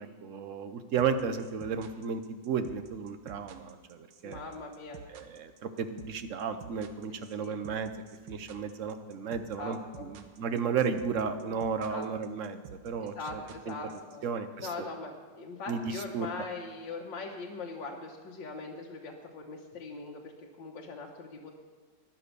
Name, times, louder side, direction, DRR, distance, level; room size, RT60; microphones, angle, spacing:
voice 1, 0.0-4.4 5.1-7.9 8.3-13.7 14.2-14.7 15.7-16.3, right 6 dB, 55° right, 9 dB, 1.0 m, -34 dB
sound 1, 1.0-14.1, right 6 dB, 90° right, 1.6 m, -49 dB
voice 2, 4.2-5.0 7.4-7.6 9.6-10.1 11.9-12.1 13.0-14.3 14.6-20.3 20.6-21.5, left 3 dB, 90° left, -1 dB, 1.9 m, -41 dB
13.5 x 10.0 x 6.8 m, 1.4 s
omnidirectional pair, 2.0 m